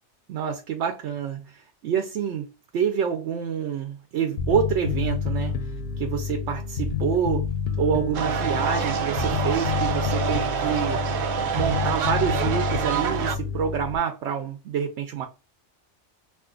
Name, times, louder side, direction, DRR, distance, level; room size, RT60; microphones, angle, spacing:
voice 1, 0.3-2.5 2.7-5.5 6.0-7.5 7.8-11.0 11.5-15.3, right 8 dB, 80° right, 0.9 m, -27 dB
Bass guitar, 4.4-14.0, left 6 dB, 65° left, 0.7 m, -29 dB
sound 1, 8.1-13.4, right 7 dB, 60° right, 0.5 m, -27 dB
2.5 x 2.5 x 3.6 m
omnidirectional pair, 1.2 m